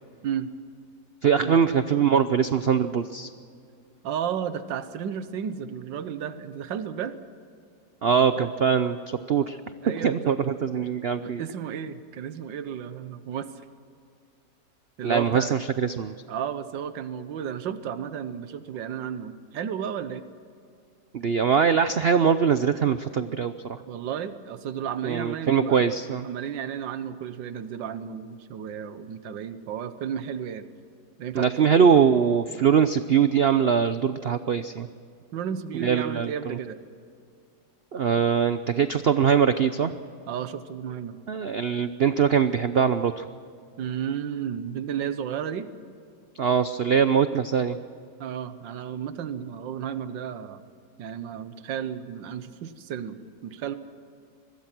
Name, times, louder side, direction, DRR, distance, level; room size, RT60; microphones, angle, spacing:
voice 1, 1.2-3.3 8.0-9.6 10.0-11.4 15.0-16.1 21.1-23.8 25.0-26.3 31.3-34.9 35.8-36.6 37.9-39.9 41.3-43.2 46.4-47.8, right 7 dB, 65° right, 11 dB, 0.6 m, -22 dB
voice 2, 4.0-7.2 8.4-8.5 9.8-10.4 11.2-13.5 15.0-15.5 16.3-20.2 23.9-25.9 26.2-30.7 31.2-31.7 35.3-36.8 40.3-41.2 43.8-45.7 48.2-50.6 51.0-53.8, right 8 dB, 85° right, 12 dB, 1.7 m, -33 dB
24.5 x 22.0 x 6.1 m, 2.4 s
omnidirectional pair, 1.9 m